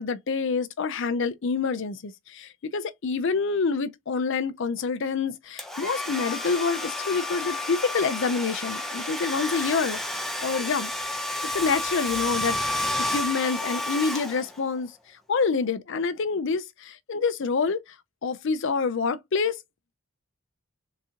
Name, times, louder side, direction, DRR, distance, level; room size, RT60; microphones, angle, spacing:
voice 1, 0.0-10.0 10.4-10.9 11.5-14.9 15.3-17.8 18.2-19.6, left 5 dB, 60° left, 0.5 m, -27 dB
Domestic sounds home sounds, 5.6-14.7, left 1 dB, ahead, 0.7 m, -31 dB
3.9 x 2.8 x 3.5 m
head